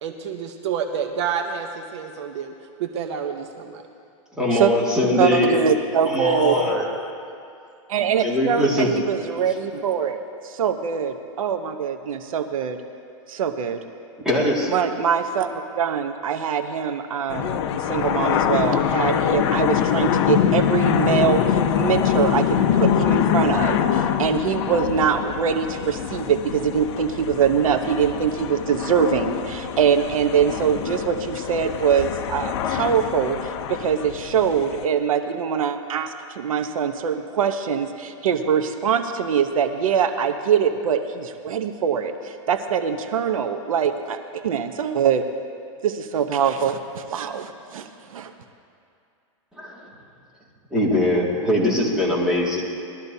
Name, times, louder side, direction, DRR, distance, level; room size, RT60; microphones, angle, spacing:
voice 1, 0.0-2.5 2.8-3.8, right 7 dB, 60° right, 5 dB, 0.9 m, -29 dB
voice 2, 4.4-5.6 6.1-6.8 8.2-8.9 14.2-14.7 49.6-49.8 50.7-52.6, left 1 dB, 5° right, -6 dB, 2.1 m, -21 dB
voice 3, 5.2-6.6 7.9-12.8 13.3-13.8 14.7-17.6 17.9-45.2 45.8-48.3, right 7 dB, 90° right, 7 dB, 0.9 m, -23 dB
sound 1, 17.3-34.8, left 9 dB, 55° left, 0.7 m, -24 dB
21.0 x 13.0 x 2.7 m, 2.5 s
supercardioid pair, 155°, 17 cm